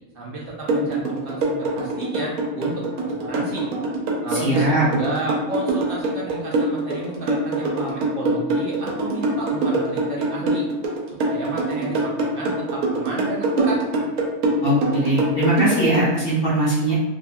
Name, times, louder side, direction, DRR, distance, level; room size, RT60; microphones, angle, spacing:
voice 1, 0.1-3.7 4.2-10.6 11.1-13.8, right 2 dB, 65° right, -4 dB, 0.5 m, -32 dB
sound 1, 0.7-16.1, right 3 dB, 85° right, 1.1 m, -23 dB
voice 2, 4.3-4.8 14.6-16.9, right 1 dB, 50° left, -8 dB, 0.8 m, -21 dB
2.7 x 2.2 x 2.6 m, 1.1 s
omnidirectional pair, 1.5 m